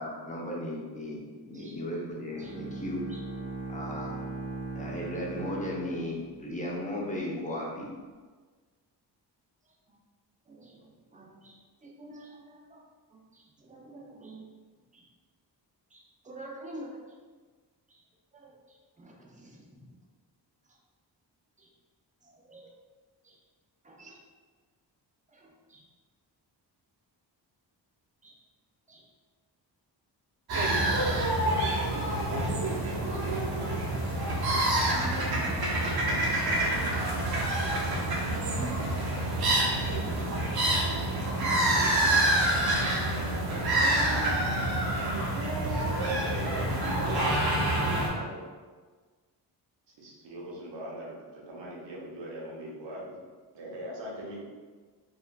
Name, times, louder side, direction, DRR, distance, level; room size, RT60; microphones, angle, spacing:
voice 1, 0.0-3.0 3.7-4.2 4.7-7.9, left 1 dB, 20° left, -3 dB, 0.7 m, -35 dB
Bowed string instrument, 2.3-6.7, right 3 dB, 40° left, 1.3 m, -39 dB
voice 2, 10.5-12.9 13.1-14.5 14.9-15.0 15.9-17.0 17.9-18.0 18.3-18.5 19.0-19.9 21.6-21.7 22.2-22.7 23.2-23.4 23.8-24.2 25.3-25.8 28.2-28.3 28.9-29.0, right 1 dB, 20° right, -1 dB, 0.6 m, -49 dB
sound 1, 30.5-48.1, right 1 dB, 60° right, 0.9 m, -27 dB
voice 3, 45.7-48.4 50.0-53.2 53.5-54.4, right 1 dB, 80° right, -3 dB, 0.9 m, -41 dB
4.6 x 2.4 x 2.2 m, 1.4 s
cardioid pair, 105°, 42 cm